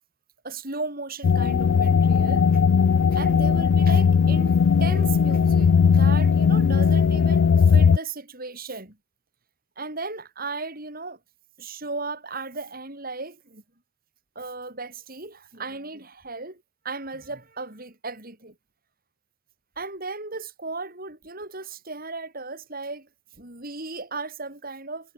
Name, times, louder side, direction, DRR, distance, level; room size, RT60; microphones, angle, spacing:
voice 1, 0.4-2.6 3.1-9.0 9.8-11.2 11.6-13.6 14.4-18.5 19.8-23.1 23.4-25.1, right 3 dB, 45° right, 7.7 m, -36 dB
sound 1, 1.2-8.0, left 6 dB, 70° left, 0.4 m, -18 dB
head